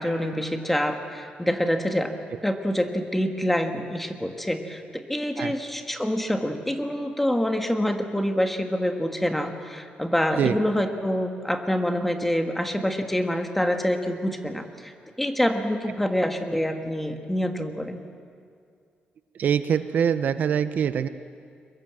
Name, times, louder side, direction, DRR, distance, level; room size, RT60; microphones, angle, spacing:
voice 1, 0.0-2.2 2.4-18.0, equal, 5° left, 5 dB, 1.5 m, -26 dB
voice 2, 19.4-21.1, right 8 dB, 60° right, 11 dB, 0.7 m, -23 dB
22.5 x 22.0 x 7.6 m, 2.3 s
cardioid pair, 145°, 3 cm